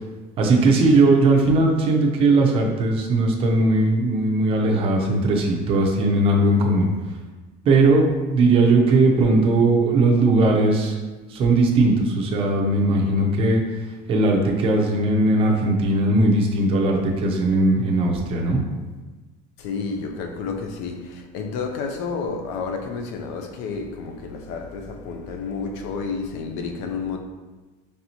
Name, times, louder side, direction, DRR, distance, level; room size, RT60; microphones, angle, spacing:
voice 1, 0.4-6.9 7.7-11.0 11.3-13.6 14.1-18.6, right 2 dB, 30° right, 0.5 m, -19 dB
voice 2, 19.6-27.2, left 4 dB, 85° left, 0.6 m, -30 dB
4.2 x 3.3 x 2.8 m
cardioid pair, 180°, 19 cm